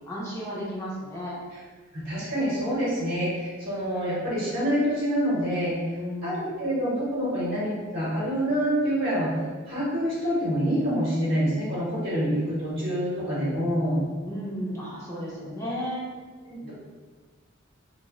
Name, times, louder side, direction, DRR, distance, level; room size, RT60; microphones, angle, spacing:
voice 1, 0.0-1.4 5.9-6.5 14.2-16.1 16.6-16.7, equal, 15° left, -7 dB, 0.5 m, -34 dB
voice 2, 1.9-5.8 6.2-14.0 16.5-16.7, equal, 55° right, -9 dB, 0.8 m, -26 dB
2.5 x 2.1 x 3.5 m, 1.4 s
head